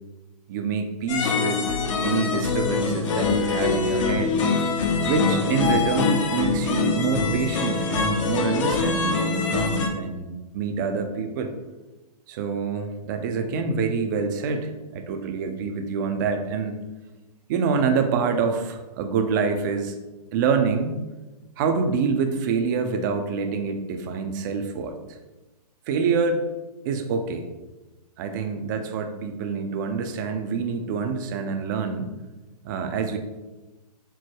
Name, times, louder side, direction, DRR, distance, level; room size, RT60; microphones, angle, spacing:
voice 1, 0.5-4.3 5.0-10.3 10.5-11.5 12.3-16.8 17.5-19.9 20.3-21.1 21.6-25.2 25.9-26.4 26.9-27.5 28.2-32.1 32.6-33.2, right 5 dB, 30° right, 6 dB, 0.4 m, -26 dB
sound 1, 1.1-9.9, left 4 dB, 50° left, 0.6 m, -24 dB
4.6 x 2.0 x 4.4 m, 1.1 s
hypercardioid pair, 140°, 21 cm